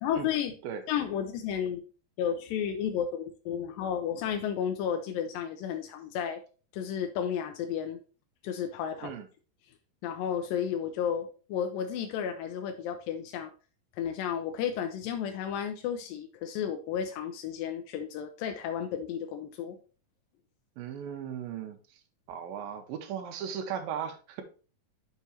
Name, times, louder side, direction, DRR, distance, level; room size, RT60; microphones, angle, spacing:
voice 1, 0.0-0.5 0.9-1.8 2.2-6.4 6.7-8.0 8.4-9.1 10.0-13.5 14.0-19.8, left 8 dB, 90° left, 5 dB, 2.4 m, -32 dB
voice 2, 20.8-21.8 22.3-24.4, right 8 dB, 85° right, 4 dB, 2.7 m, -37 dB
6.6 x 4.8 x 4.2 m, 0.36 s
omnidirectional pair, 4.0 m